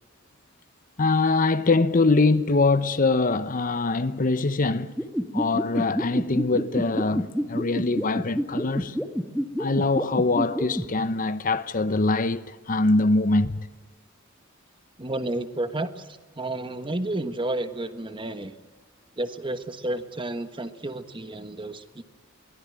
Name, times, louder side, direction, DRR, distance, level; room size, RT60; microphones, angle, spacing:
voice 1, 1.0-4.9 5.3-8.9 9.6-13.7, left 3 dB, 45° left, 0.9 m, -23 dB
sound 1, 5.0-10.8, equal, ahead, 1.4 m, -26 dB
voice 2, 15.0-16.1 16.4-18.5 19.2-22.0, right 2 dB, 25° right, 1.4 m, -31 dB
23.5 x 18.0 x 8.9 m
head